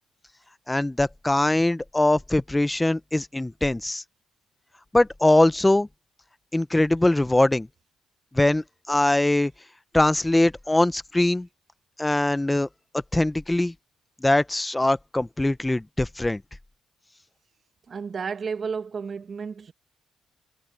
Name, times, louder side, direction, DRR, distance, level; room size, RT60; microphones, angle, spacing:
voice 1, 0.7-4.0 4.9-5.9 6.5-7.7 8.3-9.5 9.9-11.5 12.0-12.7 13.1-13.7 14.2-16.4, left 1 dB, 10° left, 0.9 m, -22 dB
voice 2, 17.9-19.7, right 5 dB, 45° right, 1.6 m, -32 dB
cardioid pair, 90°, 0 cm